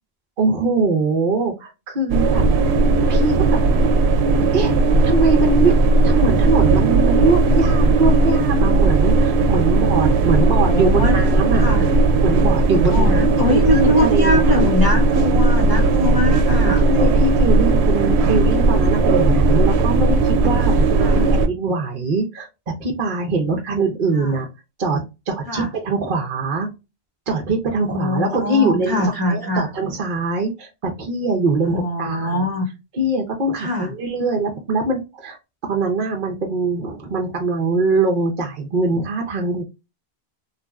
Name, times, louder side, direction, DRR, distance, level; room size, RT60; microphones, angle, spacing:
voice 1, 0.4-2.7 3.1-4.1 4.5-4.8 5.0-5.7 6.0-11.6 12.2-14.4 16.8-20.7 21.1-22.5 22.8-24.5 24.8-26.7 27.3-32.4 32.9-35.4 35.6-39.6, right 3 dB, 55° right, 0.9 m, -22 dB
sound 1, 2.1-21.5, right 3 dB, 90° right, 0.8 m, -16 dB
voice 2, 10.1-11.2 11.5-11.9 12.9-16.8 18.0-18.3 21.0-21.2 24.2-24.4 25.5-25.7 27.8-29.7 31.7-32.7 33.6-33.9, left 1 dB, 20° right, 1.2 m, -23 dB
3.2 x 2.6 x 2.2 m
omnidirectional pair, 1.1 m